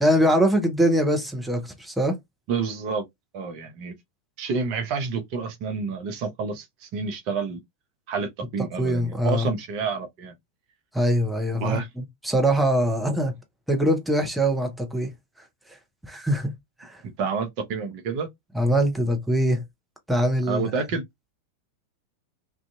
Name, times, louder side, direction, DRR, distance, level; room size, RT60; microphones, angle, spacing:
voice 1, 0.0-2.2 8.8-9.5 10.9-13.3 13.7-15.1 16.1-16.5 16.8-17.0 18.5-19.6 20.1-20.7, equal, 5° right, 0.7 m, -23 dB
voice 2, 2.5-3.0 3.3-3.9 4.4-7.6 8.1-10.3 11.6-11.9 17.0-18.3 20.5-21.0, right 5 dB, 45° right, 0.6 m, -29 dB
2.5 x 2.3 x 2.4 m
figure-of-eight pair, 90°, 0 cm